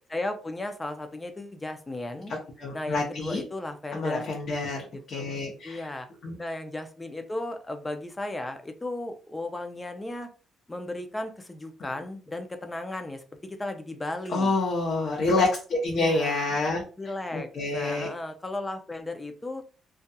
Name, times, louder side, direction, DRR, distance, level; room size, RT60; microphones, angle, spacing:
voice 1, 0.1-2.3 2.7-4.3 5.1-5.4 5.6-6.1 6.4-10.3 10.7-14.5 15.9-16.5 17.0-19.6, left 2 dB, 20° left, 6 dB, 0.5 m, -35 dB
voice 2, 2.6-3.4 3.9-5.9 6.2-6.3 14.3-16.8 17.3-18.1, left 2 dB, 55° left, -2 dB, 0.7 m, -27 dB
2.7 x 2.3 x 2.2 m, 0.37 s
cardioid pair, 90°, 0 cm